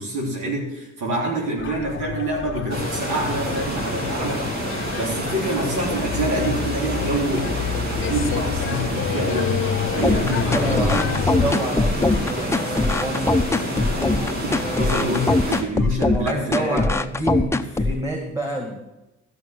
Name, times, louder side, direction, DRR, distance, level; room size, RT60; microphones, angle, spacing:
voice 1, 0.0-7.5 7.9-11.5 14.4-16.8, right 1 dB, 80° right, -3 dB, 3.6 m, -27 dB
sound 1, 1.6-11.5, left 8 dB, 45° left, 0.7 m, -29 dB
sound 2, 2.7-15.6, right 1 dB, 65° right, 3.7 m, -28 dB
sound 3, 10.0-18.0, left 2 dB, 10° left, 0.6 m, -22 dB
voice 2, 10.5-15.4 16.1-18.8, right 1 dB, 10° right, 2 dB, 2.1 m, -29 dB
14.5 x 6.0 x 7.7 m, 0.96 s
cardioid pair, 90°, 30 cm